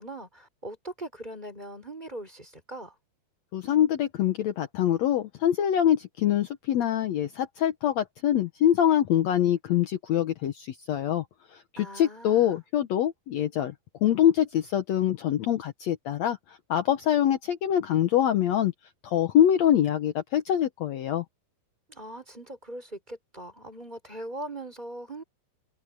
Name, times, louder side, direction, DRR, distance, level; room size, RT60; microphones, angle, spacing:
voice 1, 0.0-2.9 11.8-12.6 21.9-25.2, right 1 dB, 10° right, 4.7 m, -40 dB
voice 2, 3.5-11.2 11.5-13.7 14.0-18.7 19.0-21.2, left 11 dB, 75° left, 1.6 m, -24 dB
omnidirectional pair, 4.4 m